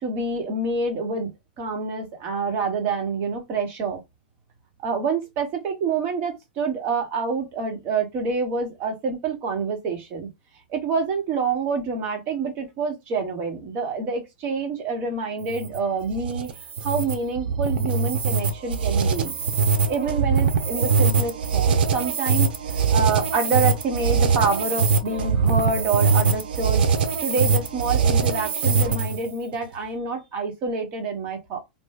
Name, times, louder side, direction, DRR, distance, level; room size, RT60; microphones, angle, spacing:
voice 1, 0.0-1.3 1.6-4.0 4.8-10.3 10.7-16.5 16.8-19.3 19.9-26.8 27.2-31.6, right 4 dB, 40° right, 1.4 m, -27 dB
sound 1, 15.4-29.3, right 5 dB, 80° right, 0.7 m, -22 dB
3.3 x 2.6 x 2.3 m
supercardioid pair, 135°, 5 cm